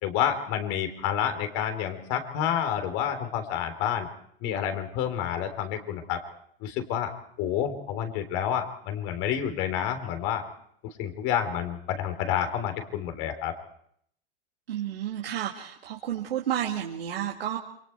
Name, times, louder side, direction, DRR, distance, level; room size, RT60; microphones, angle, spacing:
voice 1, 0.0-4.1 4.4-6.2 6.6-7.1 7.4-10.4 11.0-13.5, left 9 dB, 50° left, 7 dB, 3.6 m, -29 dB
voice 2, 14.7-17.6, right 10 dB, 90° right, -2 dB, 2.6 m, -31 dB
28.0 x 23.5 x 4.6 m, 0.67 s
hypercardioid pair, 115°, 29 cm